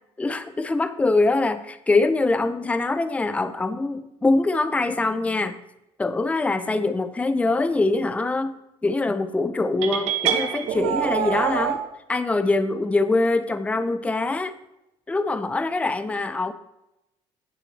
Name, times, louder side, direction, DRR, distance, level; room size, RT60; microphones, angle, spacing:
voice 1, 0.2-5.6 6.0-8.5 8.8-11.8 12.1-14.5 15.1-16.5, left 3 dB, 10° left, 12 dB, 0.5 m, -23 dB
sound 1, 9.8-11.8, right 9 dB, 75° right, 1.1 m, -25 dB
9.9 x 8.9 x 3.3 m, 0.88 s
supercardioid pair, 95°, 11 cm